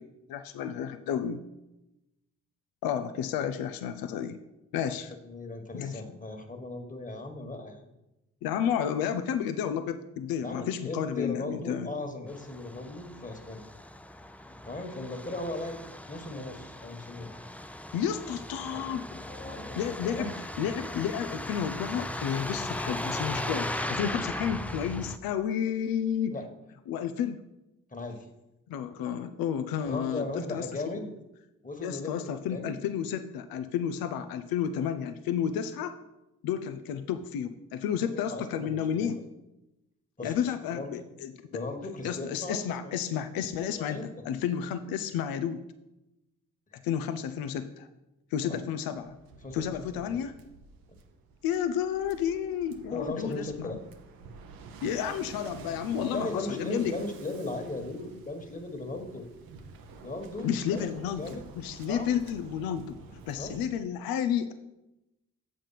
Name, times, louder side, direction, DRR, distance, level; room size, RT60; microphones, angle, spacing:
voice 1, 0.0-1.4 2.8-4.4 4.7-5.1 5.7-6.0 8.4-11.9 17.9-19.2 19.8-26.3 26.9-27.4 28.7-31.0 31.8-35.9 36.4-39.2 40.2-41.6 42.0-45.6 46.8-47.9 48.3-49.2 49.5-50.3 51.4-53.8 54.8-56.9 60.4-63.0 63.3-64.5, left 8 dB, 90° left, 10 dB, 0.5 m, -31 dB
voice 2, 5.2-7.9 10.4-13.7 14.6-15.8 16.1-17.3 19.2-20.3 26.3-26.4 27.9-28.2 29.8-31.1 31.6-32.7 38.0-39.1 40.2-40.4 40.7-41.0 41.5-42.9 43.8-44.1 48.4-48.6 49.4-50.2 52.9-53.8 56.0-59.2 60.0-61.4 61.9-62.1 63.4-63.5, left 2 dB, 25° left, 5 dB, 1.6 m, -37 dB
Truck, 12.3-25.2, left 1 dB, 5° left, 0.5 m, -38 dB
Waves surf, 48.9-63.7, right 4 dB, 85° right, 0.8 m, -50 dB
7.4 x 5.2 x 5.8 m, 0.94 s
supercardioid pair, 50°, 34 cm